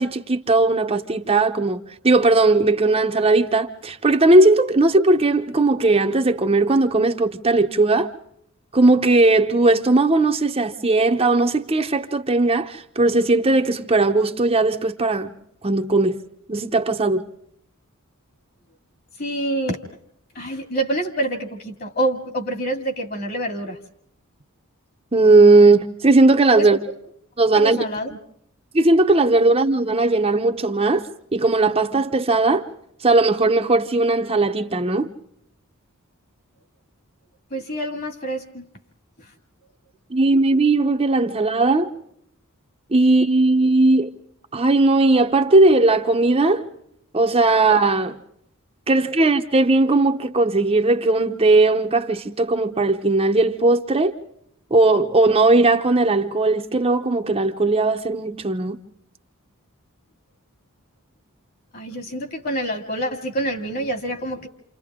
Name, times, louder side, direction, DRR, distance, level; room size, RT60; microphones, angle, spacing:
voice 1, 0.0-8.1 8.7-15.3 15.6-16.2 16.5-17.2 25.1-26.8 27.4-27.8 28.7-32.6 33.0-35.1 40.1-41.9 42.9-44.1 44.5-46.6 47.1-48.2 48.9-54.1 54.7-58.8, right 2 dB, 25° right, 0.8 m, -18 dB
voice 2, 19.2-19.8 20.3-23.8 26.5-26.7 27.5-28.2 37.5-38.7 61.7-64.5, right 1 dB, 45° left, 2.4 m, -26 dB
29.0 x 27.5 x 3.7 m
head